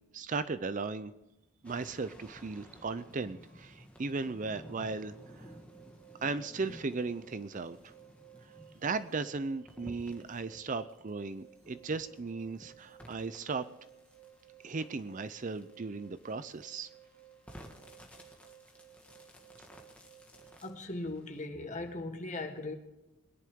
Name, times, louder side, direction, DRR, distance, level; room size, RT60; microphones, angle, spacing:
voice 1, 0.1-1.1 1.6-5.5 6.2-7.9 8.7-13.6 14.6-16.9, right 4 dB, 35° right, 0.5 m, -36 dB
sound 1, 1.6-21.4, equal, 5° left, 1.6 m, -55 dB
sound 2, 5.2-20.8, right 11 dB, 70° right, 1.7 m, -59 dB
voice 2, 20.6-22.7, left 2 dB, 35° left, 1.7 m, -38 dB
22.0 x 10.5 x 3.7 m
head